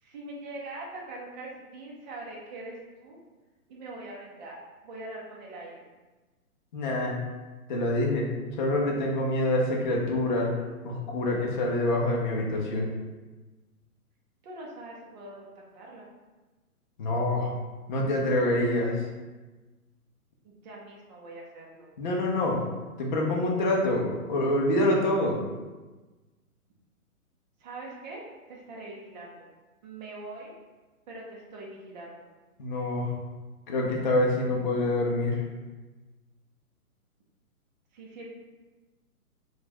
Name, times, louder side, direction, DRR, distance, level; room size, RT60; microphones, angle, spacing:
voice 1, 0.0-3.2 3.7-5.9 14.4-16.1 20.4-21.9 27.6-29.5 29.8-30.6 31.1-32.3 37.9-38.3, right 2 dB, 30° right, -3 dB, 0.6 m, -43 dB
voice 2, 6.7-7.2 7.7-8.3 8.6-10.5 10.8-12.9 17.0-17.5 17.9-19.0 22.0-22.6 23.0-25.4 32.6-33.1 33.7-35.4, left 1 dB, 35° left, -2 dB, 0.5 m, -26 dB
4.2 x 2.3 x 2.8 m, 1.2 s
hypercardioid pair, 145°, 44 cm